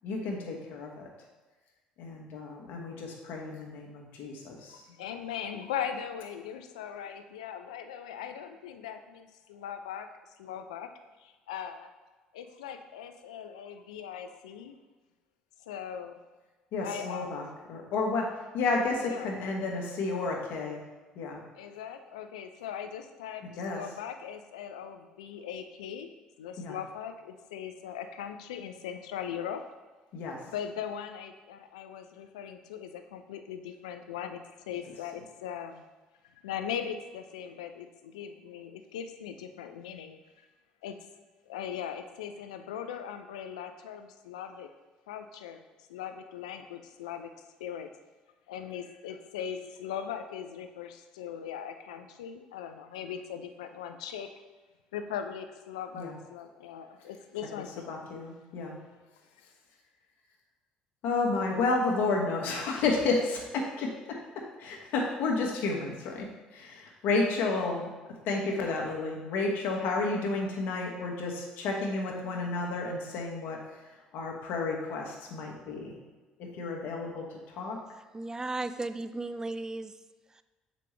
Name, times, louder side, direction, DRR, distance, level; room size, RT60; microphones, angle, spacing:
voice 1, 0.0-1.1 2.0-4.9 16.7-20.8 21.1-21.4 23.6-23.9 26.6-26.8 30.1-30.5 55.9-56.2 57.8-58.8 61.0-76.0 76.4-77.8, left 3 dB, 65° left, 0 dB, 1.3 m, -32 dB
voice 2, 4.7-10.1 10.4-10.9 11.2-11.9 12.3-14.8 15.6-16.2 16.8-17.3 19.0-19.3 21.5-23.5 23.7-26.1 26.4-29.6 30.5-35.8 36.2-40.5 40.8-41.0 41.5-44.7 45.1-45.6 45.9-47.9 48.5-54.3 54.9-58.1, left 8 dB, 85° left, 8 dB, 0.5 m, -39 dB
voice 3, 78.1-80.0 80.3-80.4, right 2 dB, 20° right, 12 dB, 0.4 m, -35 dB
6.7 x 5.1 x 3.2 m, 1.3 s
hypercardioid pair, 60°, 3 cm